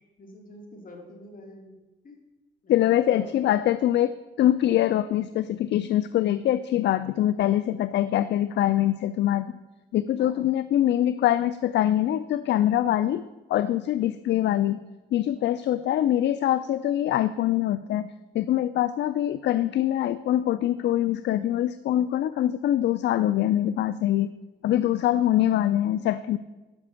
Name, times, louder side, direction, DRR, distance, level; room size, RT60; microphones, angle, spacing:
voice 1, 0.2-1.7 2.0-2.2 2.6-3.3 10.2-10.5 15.3-15.8 25.0-25.1, left 1 dB, 45° left, 2 dB, 2.7 m, -47 dB
voice 2, 2.7-9.6 9.9-14.8 15.1-24.3 24.6-26.4, left 12 dB, 65° left, 15 dB, 0.4 m, -24 dB
10.5 x 6.0 x 6.9 m, 1.1 s
cardioid pair, 90°, 20 cm